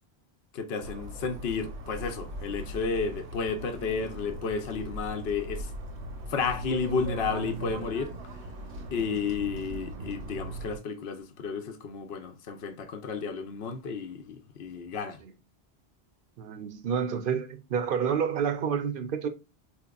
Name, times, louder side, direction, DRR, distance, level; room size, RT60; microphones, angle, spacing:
voice 1, 0.5-5.7 6.3-8.1 8.9-15.2, left 5 dB, 70° left, 0.9 m, -32 dB
sound 1, 0.8-10.8, right 2 dB, 85° right, 1.2 m, -39 dB
voice 2, 16.4-19.3, right 7 dB, 60° right, 0.7 m, -29 dB
4.6 x 2.9 x 2.3 m
omnidirectional pair, 1.1 m